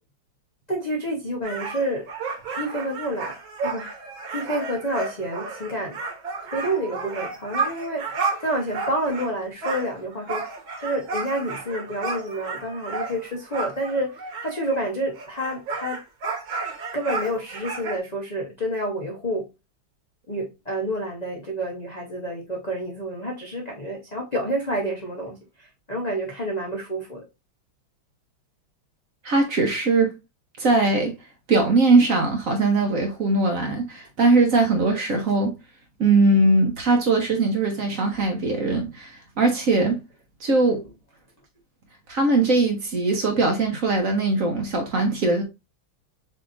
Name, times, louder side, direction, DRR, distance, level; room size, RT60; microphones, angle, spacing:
voice 1, 0.7-2.1 2.6-3.3 3.6-3.9 4.3-6.0 6.5-10.4 10.8-16.0 16.9-19.5 20.3-27.2, right 1 dB, 60° left, 0.4 m, -29 dB
sound 1, 1.4-9.3 9.6-14.9 15.1-18.0, right 4 dB, 75° right, 2.1 m, -32 dB
voice 2, 29.2-30.1 30.6-31.1 31.5-35.5 36.0-40.0 40.4-40.8 42.1-45.4, right 3 dB, 50° right, 1.1 m, -20 dB
6.6 x 2.9 x 2.5 m
omnidirectional pair, 2.2 m